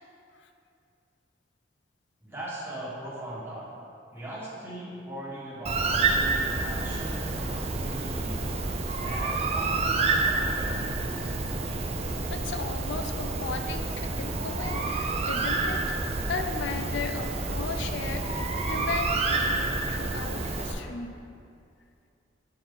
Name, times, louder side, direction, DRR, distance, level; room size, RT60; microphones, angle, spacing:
voice 1, 2.2-3.7 4.1-8.5 9.0-11.4, right 1 dB, 10° right, -8 dB, 1.4 m, -39 dB
Bird, 5.7-20.7, right 3 dB, 35° right, 0.5 m, -29 dB
voice 2, 12.3-15.9 16.3-21.1, left 4 dB, 70° left, 6 dB, 0.4 m, -36 dB
8.1 x 4.4 x 3.9 m, 2.4 s
head